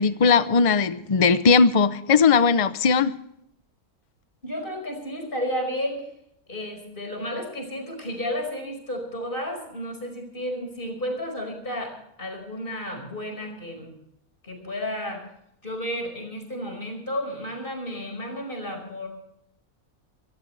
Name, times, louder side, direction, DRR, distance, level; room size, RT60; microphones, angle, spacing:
voice 1, 0.0-3.1, left 5 dB, 60° left, 13 dB, 0.3 m, -19 dB
voice 2, 4.4-6.1 6.5-14.0 14.4-15.2 15.6-19.1, equal, 35° left, 3 dB, 5.5 m, -32 dB
25.5 x 14.5 x 3.3 m, 0.75 s
omnidirectional pair, 1.6 m